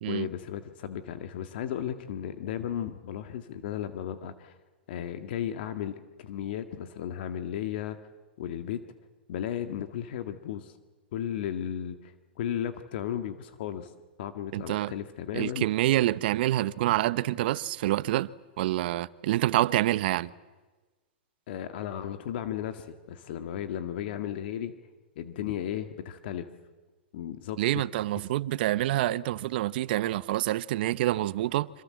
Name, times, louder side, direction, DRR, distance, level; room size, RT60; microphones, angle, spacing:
voice 1, 0.0-4.6 4.9-8.0 8.4-8.8 9.3-10.7 11.1-13.9 14.2-15.7 21.5-24.7 25.2-26.5 27.1-27.8, left 10 dB, 60° left, 1.8 m, -35 dB
voice 2, 14.5-14.9 15.3-18.3 18.6-20.3 27.6-31.8, right 15 dB, 60° right, 0.9 m, -27 dB
27.0 x 26.0 x 7.7 m
hypercardioid pair, 125°, 6 cm